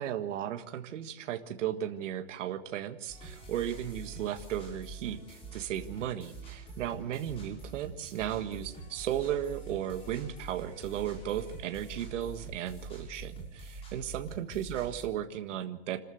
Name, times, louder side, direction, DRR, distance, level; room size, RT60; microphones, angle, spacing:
voice 1, 0.0-16.0, right 10 dB, 75° right, 6 dB, 1.7 m, -35 dB
sound 1, 3.1-15.1, right 3 dB, 15° left, 6.1 m, -45 dB
27.0 x 13.5 x 7.9 m, 0.88 s
supercardioid pair, 175°, 37 cm